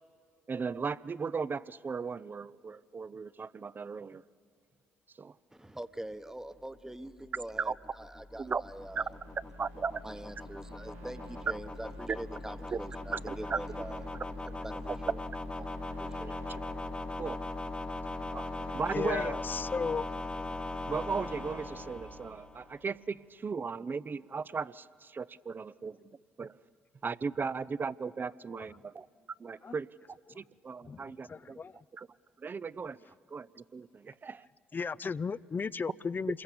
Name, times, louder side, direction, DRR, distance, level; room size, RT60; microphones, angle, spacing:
voice 1, 0.5-4.2 5.2-5.3 7.6-7.7 8.4-8.6 8.9-9.0 9.6-10.0 12.1-12.2 12.7-12.8 13.3-13.6 16.5-16.6 17.1-17.4 18.3-18.5 18.7-19.4 20.9-26.0 26.4-26.6 27.0-29.1 29.4-29.9 30.3-31.6 31.9-32.1 32.4-34.5, right 5 dB, 35° right, 19 dB, 0.6 m, -36 dB
voice 2, 5.5-9.1 10.0-14.0 14.4-15.2 16.0-16.4, right 1 dB, 10° right, 11 dB, 1.1 m, -44 dB
sound 1, 6.6-22.8, left 2 dB, 20° left, 1.3 m, -40 dB
sound 2, 8.6-22.0, right 2 dB, 85° right, 3.3 m, -51 dB
voice 3, 18.9-20.1 28.5-28.6 29.6-29.7 30.3-30.4 30.9-31.8 34.7-36.4, left 5 dB, 35° left, 18 dB, 0.5 m, -35 dB
27.5 x 22.0 x 7.0 m, 2.3 s
hypercardioid pair, 50°, 6 cm